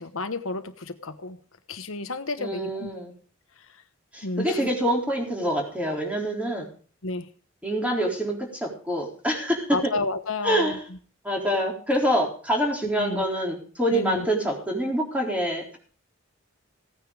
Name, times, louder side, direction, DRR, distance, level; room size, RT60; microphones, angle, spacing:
voice 1, 0.0-1.4 1.7-2.9 4.2-4.7 7.0-7.3 9.7-10.8 13.0-13.2 13.9-14.3, left 3 dB, 80° left, 9 dB, 1.2 m, -31 dB
voice 2, 2.4-3.1 4.1-6.7 7.6-9.8 10.4-10.8 11.2-15.8, equal, 5° right, 0 dB, 4.0 m, -26 dB
17.0 x 9.6 x 5.0 m, 0.42 s
head